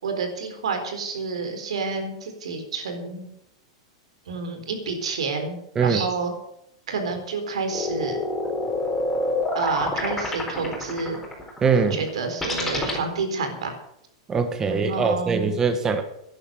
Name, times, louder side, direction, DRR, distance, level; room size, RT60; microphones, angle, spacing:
voice 1, 0.0-3.3 4.3-6.3 6.9-8.2 9.5-11.2 11.7-13.7 14.6-15.4, right 4 dB, 85° right, 6 dB, 4.0 m, -29 dB
sound 1, 7.7-13.0, left 2 dB, 5° left, 4.3 m, -27 dB
voice 2, 11.6-12.0 14.3-16.0, right 5 dB, 15° right, 8 dB, 1.2 m, -22 dB
11.0 x 11.0 x 7.7 m, 0.77 s
supercardioid pair, 140°, 3 cm